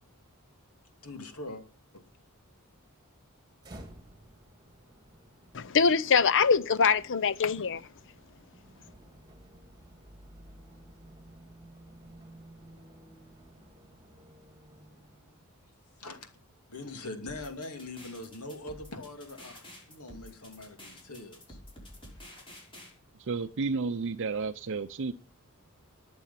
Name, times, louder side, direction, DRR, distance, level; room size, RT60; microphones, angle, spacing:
voice 1, 1.0-1.6 1.9-2.1 16.0-16.3 16.7-21.6, left 2 dB, 85° left, 2.7 m, -42 dB
sound 1, 3.6-15.6, right 1 dB, 20° right, 2.4 m, -54 dB
voice 2, 5.5-7.9, left 5 dB, 60° left, 0.7 m, -24 dB
sound 2, 17.3-22.9, left 1 dB, 25° left, 5.9 m, -49 dB
voice 3, 23.2-25.1, right 4 dB, 55° right, 0.6 m, -32 dB
20.5 x 7.0 x 5.8 m
head